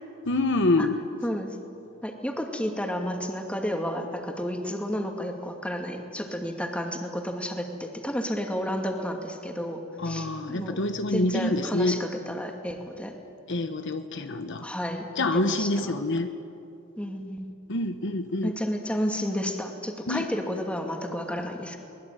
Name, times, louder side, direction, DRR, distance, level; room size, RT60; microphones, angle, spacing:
voice 1, 0.3-1.0 10.0-12.0 13.5-14.7 15.2-16.3 17.7-18.5 20.1-20.3, left 2 dB, 65° left, 8 dB, 1.1 m, -26 dB
voice 2, 1.2-1.6 2.0-10.8 11.1-13.1 14.6-16.1 17.0-17.5 18.4-21.8, equal, 5° left, 3 dB, 2.3 m, -31 dB
22.0 x 20.0 x 9.1 m, 2.7 s
head